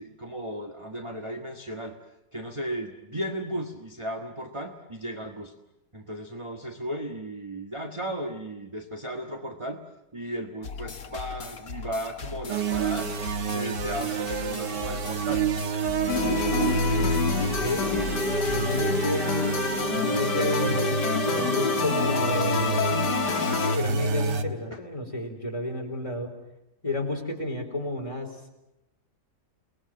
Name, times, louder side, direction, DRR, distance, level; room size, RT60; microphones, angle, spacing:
voice 1, 0.0-2.0 2.3-5.5 5.9-9.8 10.1-13.1 13.4-15.5 24.7-24.8, right 1 dB, 20° right, 4 dB, 1.5 m, -35 dB
sound 1, 10.6-19.0, left 5 dB, 60° left, 2.1 m, -39 dB
sound 2, 12.5-24.4, right 5 dB, 80° right, 2.0 m, -29 dB
sound 3, 16.1-23.8, left 6 dB, 80° left, 1.9 m, -27 dB
voice 2, 17.6-18.2 18.4-22.9 23.7-26.3 26.8-28.3, left 2 dB, 20° left, 2 dB, 4.1 m, -31 dB
30.0 x 20.0 x 7.7 m, 0.92 s
omnidirectional pair, 1.8 m